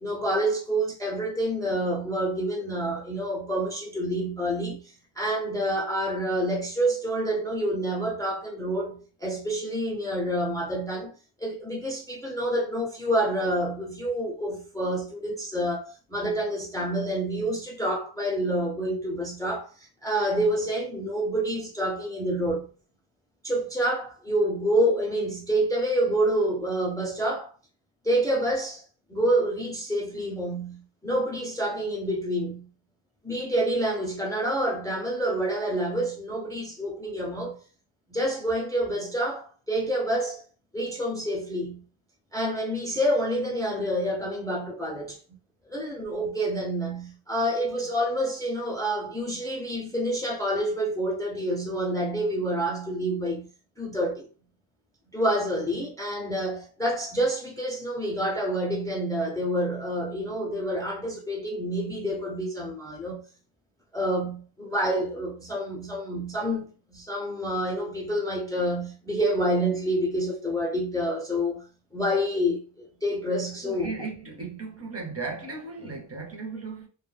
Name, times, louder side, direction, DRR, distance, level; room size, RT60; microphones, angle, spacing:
voice 1, 0.0-22.7 23.4-27.5 28.0-28.8 29.1-32.7 33.2-37.6 38.1-40.4 40.7-41.8 42.3-45.2 45.7-53.5 53.8-54.3 55.1-63.2 63.9-71.6 71.9-73.9, right 1 dB, 5° left, 0.5 m, -28 dB
voice 2, 73.6-76.9, right 4 dB, 30° right, 0.8 m, -36 dB
2.2 x 2.1 x 3.2 m
wide cardioid pair, 65°, 50 cm